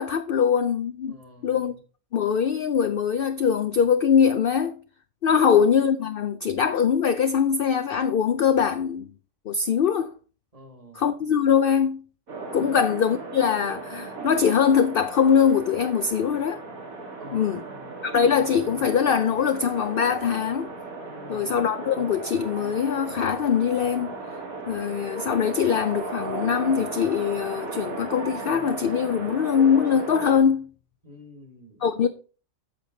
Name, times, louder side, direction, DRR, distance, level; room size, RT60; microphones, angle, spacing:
voice 1, 0.0-1.2 1.4-1.7 2.1-4.8 5.2-9.1 9.5-10.1 10.9-12.0 12.5-16.6 17.3-17.6 18.0-20.7 21.3-24.2 24.7-30.7 31.8-32.1, left 7 dB, 65° left, 0.5 m, -22 dB
voice 2, 1.1-1.8 5.3-5.5 10.5-11.1 12.6-12.8 17.2-17.9 21.0-21.5 31.0-32.1, left 1 dB, 25° right, 1.7 m, -48 dB
sound 1, 12.3-30.4, right 3 dB, 85° right, 2.4 m, -36 dB
8.7 x 6.8 x 3.8 m
omnidirectional pair, 1.4 m